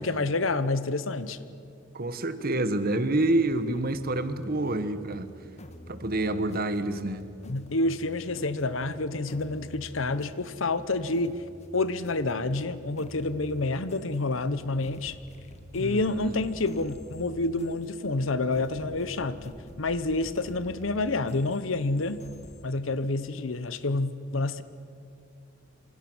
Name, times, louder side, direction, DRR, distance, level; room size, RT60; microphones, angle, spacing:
voice 1, 0.0-1.4 7.4-11.4 11.7-15.1 15.7-22.2 22.6-24.6, left 2 dB, 80° left, 14 dB, 1.0 m, -28 dB
voice 2, 1.9-5.3 5.9-7.2 15.8-16.4, right 2 dB, 50° right, 11 dB, 1.3 m, -28 dB
sound 1, 3.3-22.6, equal, 35° left, 1.5 m, -49 dB
26.5 x 25.5 x 6.3 m, 2.4 s
head